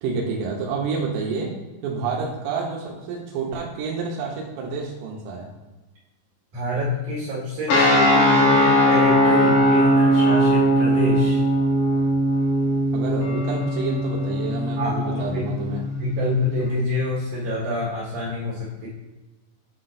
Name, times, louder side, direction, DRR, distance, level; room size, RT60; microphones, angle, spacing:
voice 1, 0.0-1.5 1.8-5.5 12.9-15.8, right 4 dB, 90° right, -2 dB, 3.3 m, -29 dB
voice 2, 6.5-11.4 14.8-15.4 15.9-18.9, left 2 dB, 55° right, -7 dB, 3.2 m, -27 dB
sound 1, 7.7-16.6, equal, 75° left, 1.9 m, -20 dB
8.1 x 5.8 x 2.6 m, 1.2 s
omnidirectional pair, 5.4 m